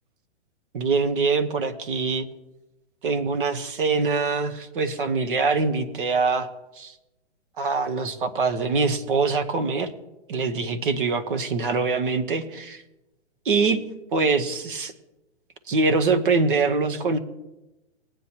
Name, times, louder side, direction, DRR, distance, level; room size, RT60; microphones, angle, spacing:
voice 1, 0.7-2.3 3.0-6.5 6.7-6.9 7.6-9.9 10.3-12.8 13.4-13.8 14.1-14.9 15.7-17.2, right 4 dB, 45° right, 9 dB, 1.1 m, -24 dB
19.5 x 9.6 x 2.9 m, 0.99 s
hypercardioid pair, 170°, 35 cm